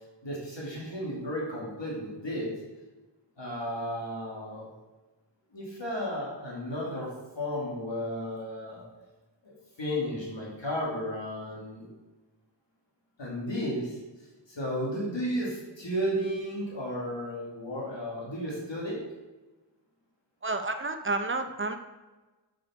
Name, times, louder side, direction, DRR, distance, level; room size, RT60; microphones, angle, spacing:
voice 1, 0.2-2.5 3.4-4.7 5.5-7.1 7.4-8.8 9.4-9.5 9.8-11.9 13.2-14.0 14.5-19.0, equal, 80° left, -4 dB, 2.1 m, -33 dB
voice 2, 20.4-21.8, right 3 dB, 30° right, 7 dB, 0.7 m, -30 dB
6.6 x 5.1 x 4.1 m, 1.2 s
wide cardioid pair, 45°, 44 cm